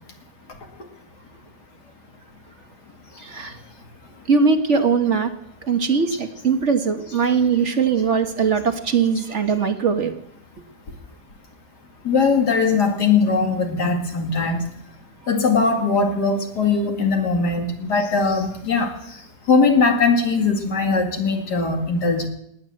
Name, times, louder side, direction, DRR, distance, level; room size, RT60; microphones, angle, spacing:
voice 1, 3.2-3.6 4.3-5.3 5.6-10.2, right 5 dB, 50° right, 7 dB, 1.4 m, -20 dB
voice 2, 12.0-14.6 15.3-18.9 19.5-22.3, left 4 dB, 80° left, 3 dB, 2.9 m, -20 dB
18.5 x 9.8 x 7.6 m, 0.77 s
omnidirectional pair, 1.7 m